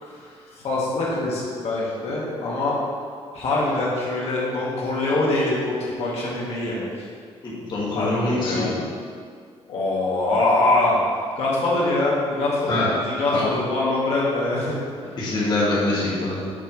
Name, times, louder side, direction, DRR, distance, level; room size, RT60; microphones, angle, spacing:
voice 1, 0.0-2.8 3.3-6.9 7.9-8.7 9.7-11.0 11.4-14.7 15.1-15.2, left 2 dB, 65° left, -6 dB, 1.8 m, -24 dB
voice 2, 7.4-8.8 12.7-12.9 13.3-13.5 15.2-16.5, left 2 dB, 40° left, -7 dB, 1.6 m, -24 dB
7.2 x 3.5 x 5.9 m, 2.1 s
cardioid pair, 130°, 11 cm